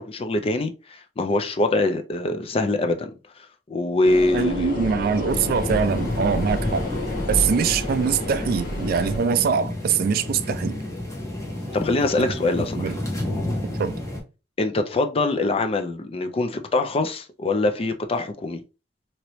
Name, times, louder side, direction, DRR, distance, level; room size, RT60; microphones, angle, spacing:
voice 1, 0.1-3.1 3.7-4.7 11.7-12.9 14.6-18.6, left 2 dB, 35° left, 0.4 m, -23 dB
sound 1, 4.0-9.2, left 1 dB, 55° left, 1.0 m, -29 dB
voice 2, 4.3-6.8 7.3-10.8 12.2-12.3 12.8-13.0 13.8-14.0, right 6 dB, 55° right, 0.3 m, -23 dB
sound 2, 5.3-14.2, left 1 dB, 20° left, 1.0 m, -31 dB
3.0 x 2.8 x 3.0 m
head